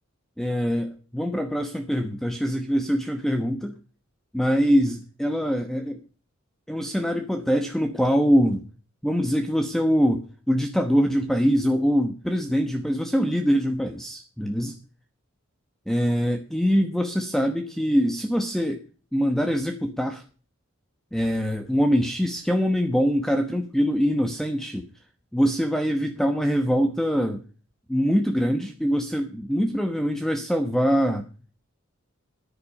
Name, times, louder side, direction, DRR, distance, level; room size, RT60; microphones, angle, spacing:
voice 1, 0.4-3.7 4.3-6.0 6.7-8.6 9.0-14.8 15.9-18.8 19.1-20.2 21.1-24.9 25.3-27.4 27.9-31.3, equal, ahead, 6 dB, 1.1 m, -23 dB
14.0 x 10.0 x 5.4 m, 0.38 s
head